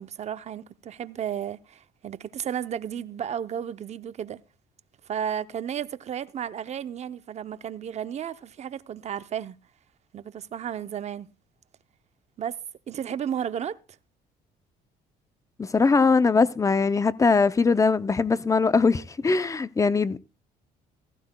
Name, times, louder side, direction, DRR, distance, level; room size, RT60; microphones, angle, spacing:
voice 1, 0.0-4.4 5.0-9.6 10.1-11.3 12.4-12.6 12.9-13.8, right 9 dB, 40° right, 0.6 m, -33 dB
voice 2, 15.6-20.2, left 4 dB, 20° left, 0.5 m, -21 dB
16.0 x 15.0 x 2.2 m
cardioid pair, 110°, 17 cm